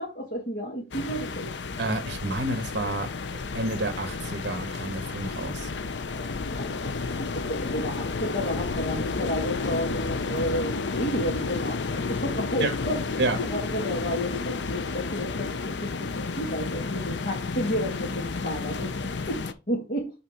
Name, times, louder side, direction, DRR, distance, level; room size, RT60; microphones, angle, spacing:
voice 1, 0.0-1.5 6.6-13.0 13.4-20.1, equal, 50° left, 2.3 m, -32 dB
sound 1, 0.9-19.5, left 4 dB, 75° left, 0.6 m, -31 dB
voice 2, 1.8-3.1 3.5-5.7 12.6-12.7 13.2-13.4, right 2 dB, 65° right, 1.2 m, -29 dB
5.7 x 4.2 x 5.8 m
head